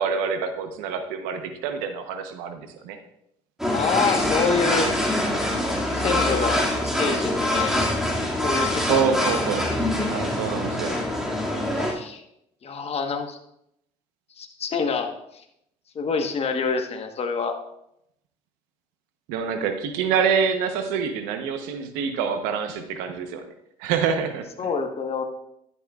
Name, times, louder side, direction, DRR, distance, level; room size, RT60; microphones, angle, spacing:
voice 1, 0.0-3.0 8.8-9.7 10.0-11.0 19.3-23.5 23.8-24.7, right 6 dB, 85° right, 7 dB, 1.0 m, -26 dB
sound 1, 3.6-11.9, left 1 dB, 5° right, 2.3 m, -24 dB
voice 2, 3.7-4.9 5.9-7.8 8.4-9.1 11.8-12.2 12.6-13.4 14.4-15.1 15.9-17.6 24.6-25.2, left 5 dB, 45° left, 5 dB, 1.3 m, -26 dB
11.0 x 8.2 x 2.4 m, 0.78 s
supercardioid pair, 75°, 14 cm